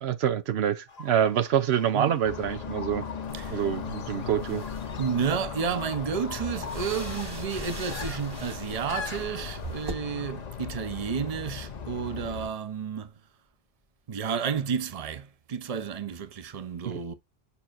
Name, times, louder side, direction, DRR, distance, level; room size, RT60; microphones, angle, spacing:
voice 1, 0.0-3.0 3.5-4.6 16.8-17.0, right 9 dB, 85° right, 0.9 m, -26 dB
sound 1, 0.9-10.4, left 5 dB, 75° left, 1.4 m, -45 dB
sound 2, 2.2-12.5, left 6 dB, 45° left, 0.7 m, -38 dB
sound 3, 3.3-9.9, right 1 dB, 25° right, 1.1 m, -42 dB
voice 2, 5.0-13.1 14.1-17.1, right 7 dB, 40° right, 0.8 m, -31 dB
7.0 x 5.6 x 2.5 m
omnidirectional pair, 1.0 m